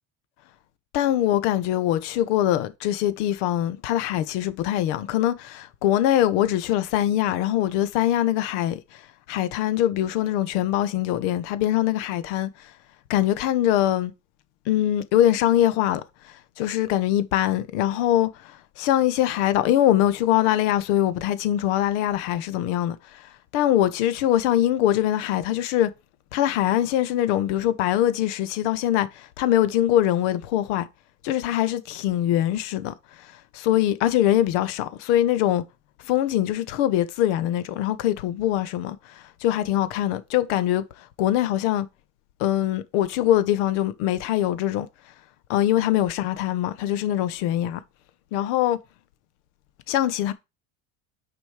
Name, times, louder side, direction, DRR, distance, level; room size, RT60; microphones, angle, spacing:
voice 1, 0.9-9.0 9.3-12.5 13.1-14.1 14.7-16.0 16.6-18.5 18.8-23.0 23.5-25.9 26.3-30.9 31.2-32.9 33.5-35.6 36.1-40.8 41.2-41.9 42.4-44.9 45.5-47.8 48.3-48.8 49.9-50.3, left 12 dB, 75° left, 1.0 m, -23 dB
6.5 x 5.2 x 4.9 m
cardioid pair, 180°, 36 cm